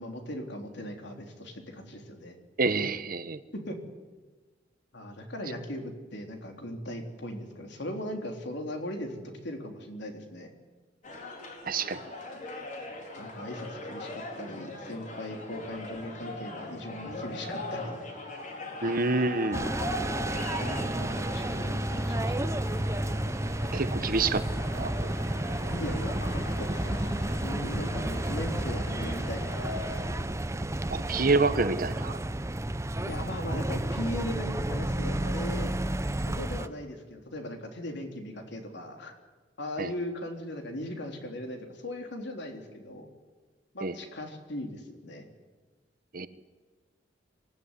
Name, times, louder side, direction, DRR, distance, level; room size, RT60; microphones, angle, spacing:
voice 1, 0.0-2.4 3.5-3.8 4.9-10.5 13.2-18.0 20.6-22.6 25.7-27.0 27.4-30.0 33.0-35.7 36.2-39.1 39.6-43.1 43.7-45.3, left 1 dB, 65° left, 4 dB, 3.6 m, -38 dB
voice 2, 2.6-3.4 11.7-12.0 18.8-19.6 23.7-24.4 24.8-24.9 30.9-32.2 39.8-39.9 43.8-43.9 46.1-46.3, right 3 dB, 50° right, 12 dB, 1.2 m, -27 dB
sound 1, 11.0-20.8, left 2 dB, 45° left, 4.3 m, -39 dB
sound 2, 19.5-30.0, left 1 dB, 90° left, 7.9 m, -43 dB
sound 3, 19.5-36.7, right 1 dB, 15° right, 0.7 m, -31 dB
24.5 x 16.5 x 9.9 m, 1.3 s
head